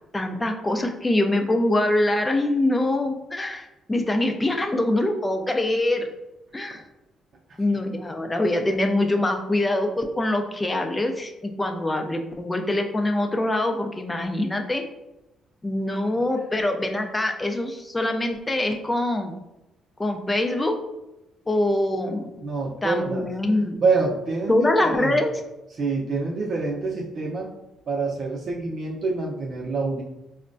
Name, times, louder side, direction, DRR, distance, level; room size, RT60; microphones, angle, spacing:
voice 1, 0.1-6.1 6.5-6.8 7.6-14.9 15.6-19.4 20.0-20.7 21.5-22.3 22.8-23.7 24.5-25.4, left 1 dB, 15° left, 4 dB, 0.4 m, -24 dB
voice 2, 22.4-23.3 23.8-25.1 25.8-27.5 27.9-30.0, right 3 dB, 55° right, -4 dB, 0.6 m, -26 dB
4.3 x 2.1 x 2.6 m, 0.94 s
cardioid pair, 90°, 0 cm